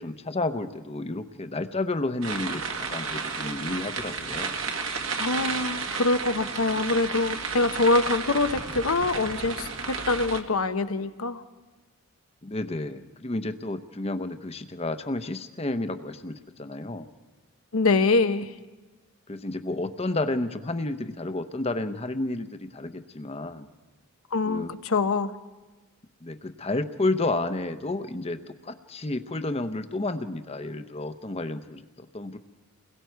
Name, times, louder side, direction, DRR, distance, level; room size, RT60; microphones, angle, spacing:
voice 1, 0.0-4.5 12.4-17.1 19.3-23.7 24.4-24.7 26.2-32.4, left 2 dB, 30° left, 9 dB, 0.8 m, -31 dB
sound 1, 2.2-10.4, right 5 dB, 65° right, 1.7 m, -32 dB
voice 2, 5.2-11.4 17.7-18.5 24.3-25.3, left 3 dB, 85° left, 10 dB, 0.9 m, -24 dB
29.5 x 21.5 x 4.6 m, 1.2 s
head